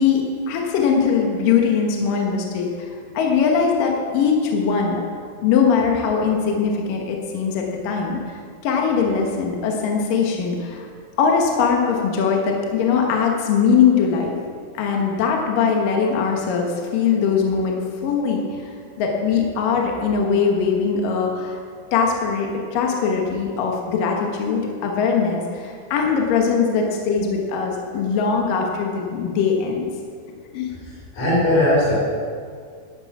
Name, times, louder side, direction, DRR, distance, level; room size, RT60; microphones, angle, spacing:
voice 1, 0.0-5.0 5.4-10.9 11.2-14.3 14.7-21.6 21.9-29.9 30.5-30.7, left 6 dB, 70° left, 1 dB, 2.2 m, -21 dB
voice 2, 31.1-31.9, left 1 dB, 40° left, -6 dB, 4.4 m, -18 dB
11.5 x 10.5 x 6.0 m, 2.1 s
omnidirectional pair, 5.4 m